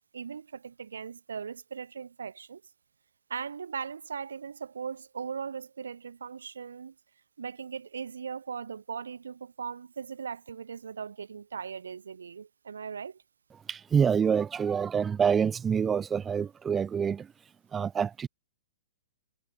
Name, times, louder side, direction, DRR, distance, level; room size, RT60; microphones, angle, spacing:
voice 1, 0.1-2.6 3.3-7.0 7.4-13.2, right 6 dB, 75° right, 1.7 m, -39 dB
voice 2, 13.7-18.3, right 7 dB, 15° right, 0.4 m, -27 dB
figure-of-eight pair, 110°, 0 cm